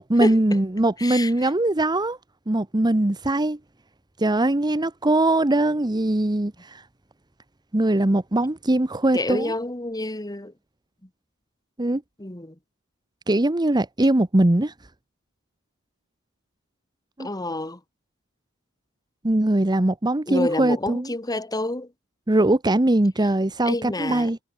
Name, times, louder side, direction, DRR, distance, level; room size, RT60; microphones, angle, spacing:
voice 1, 0.0-2.2 2.5-3.6 4.2-6.8 7.7-9.5 11.8-12.0 13.3-14.7 17.2-17.3 19.2-21.1 22.3-24.4, right 1 dB, 20° right, 0.9 m, -21 dB
voice 2, 1.0-1.5 9.1-10.5 12.2-12.6 17.2-17.8 20.3-21.9 23.7-24.3, left 2 dB, 20° left, 2.2 m, -28 dB
head